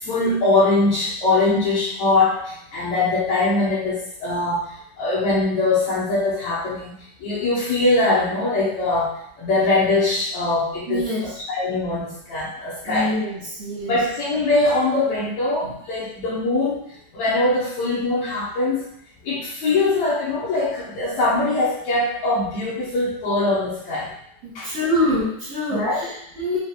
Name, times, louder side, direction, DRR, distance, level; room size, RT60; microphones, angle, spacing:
voice 1, 0.0-4.7 5.0-6.9 7.2-9.1 9.4-13.1 13.8-16.8 17.1-18.8 19.2-24.1 24.5-24.7 25.7-26.1, left 2 dB, 70° left, -8 dB, 1.7 m, -22 dB
voice 2, 10.9-11.3 12.8-14.0 15.6-15.7 24.4-26.6, left 1 dB, 80° right, -9 dB, 1.4 m, -25 dB
5.8 x 2.5 x 2.8 m, 0.73 s
omnidirectional pair, 4.5 m